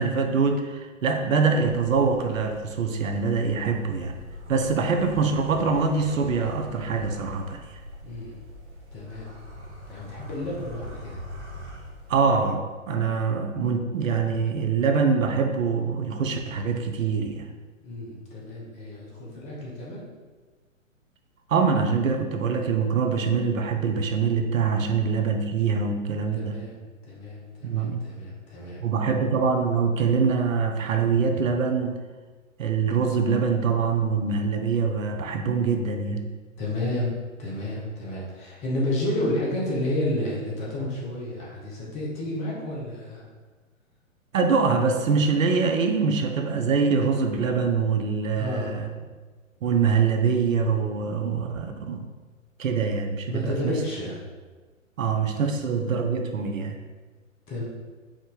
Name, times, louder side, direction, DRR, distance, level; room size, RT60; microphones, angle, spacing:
voice 1, 0.0-4.1 4.5-7.6 12.1-17.5 21.5-26.6 27.6-28.0 28.8-32.0 32.6-36.3 44.3-48.9 49.6-52.1 52.6-53.8 55.0-56.8, right 5 dB, 70° right, 5 dB, 0.6 m, -24 dB
sound 1, 1.6-12.4, left 1 dB, 55° right, 1.1 m, -43 dB
voice 2, 8.0-8.4 8.9-9.3 9.9-11.2 17.8-20.0 26.3-26.8 27.0-28.8 36.6-43.2 48.3-49.0 53.2-54.2 57.5-57.6, left 1 dB, 15° left, -4 dB, 0.7 m, -31 dB
4.8 x 2.6 x 3.6 m, 1.4 s
figure-of-eight pair, 120°, 41 cm